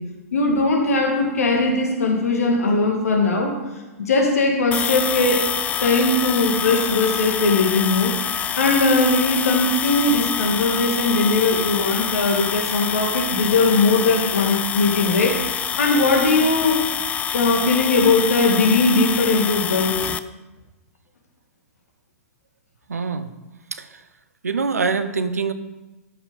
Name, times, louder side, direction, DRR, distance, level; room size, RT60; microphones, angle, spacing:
voice 1, 0.3-3.6 4.0-5.5 5.8-8.2 8.6-15.4 15.8-16.8 17.3-20.0, left 3 dB, 70° left, 3 dB, 2.1 m, -19 dB
sound 1, 4.7-20.2, left 8 dB, 15° left, 0.3 m, -26 dB
voice 2, 22.9-23.3 23.7-24.0 24.4-25.5, right 4 dB, 75° right, 11 dB, 0.8 m, -24 dB
13.0 x 5.8 x 5.1 m, 1.1 s
figure-of-eight pair, 110°, 8 cm